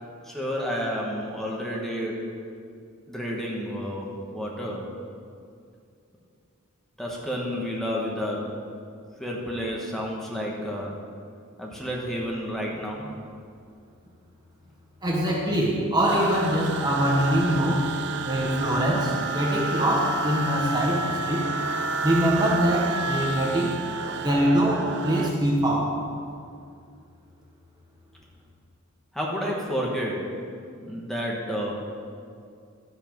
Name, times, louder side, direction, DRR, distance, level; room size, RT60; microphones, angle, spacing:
voice 1, 0.2-2.3 3.1-4.9 7.0-8.5 9.2-10.9 11.6-13.1 29.1-30.2 30.7-31.8, equal, ahead, -3 dB, 1.3 m, -30 dB
voice 2, 15.0-17.9 18.2-21.5 22.0-23.7 24.1-25.9, equal, 20° right, -3 dB, 1.2 m, -23 dB
sound 1, 16.1-25.3, right 4 dB, 55° right, 0.5 m, -30 dB
11.5 x 7.8 x 5.3 m, 2.3 s
head